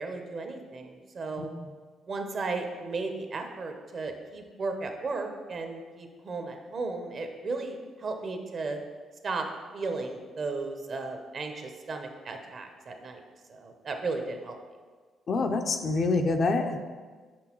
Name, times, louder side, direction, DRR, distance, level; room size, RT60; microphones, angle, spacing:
voice 1, 0.0-1.5 2.1-8.8 9.2-9.5 9.7-13.2 13.5-14.6, right 3 dB, 50° right, 5 dB, 0.7 m, -35 dB
voice 2, 15.3-16.8, left 3 dB, 50° left, 6 dB, 0.4 m, -26 dB
6.0 x 5.3 x 3.0 m, 1.5 s
cardioid pair, 90°, 0 cm